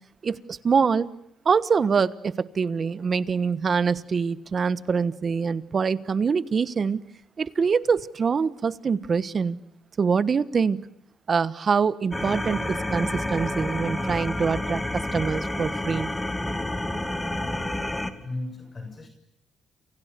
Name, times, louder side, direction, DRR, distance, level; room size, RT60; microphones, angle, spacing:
voice 1, 0.2-1.1 1.4-7.0 7.4-9.6 10.0-10.8 11.3-14.8 15.1-16.1, right 5 dB, 40° right, 16 dB, 1.3 m, -24 dB
sound 1, 12.1-18.1, left 1 dB, 10° left, 2.6 m, -29 dB
voice 2, 18.2-19.1, left 2 dB, 35° left, 5 dB, 6.9 m, -35 dB
29.0 x 29.0 x 6.9 m, 0.76 s
cardioid pair, 90°, 0 cm